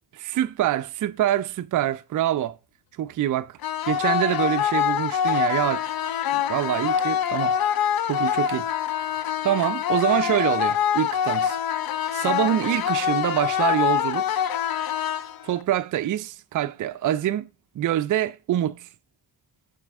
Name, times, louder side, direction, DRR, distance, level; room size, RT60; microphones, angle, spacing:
voice 1, 0.1-2.6 3.0-3.6 3.9-5.8 6.3-8.7 9.4-11.6 12.1-14.3 15.4-17.5 17.7-18.9, right 12 dB, 45° right, 0.4 m, -25 dB
sound 1, 3.6-15.6, left 9 dB, 55° left, 0.6 m, -25 dB
5.9 x 4.9 x 3.5 m
supercardioid pair, 45°, 45 cm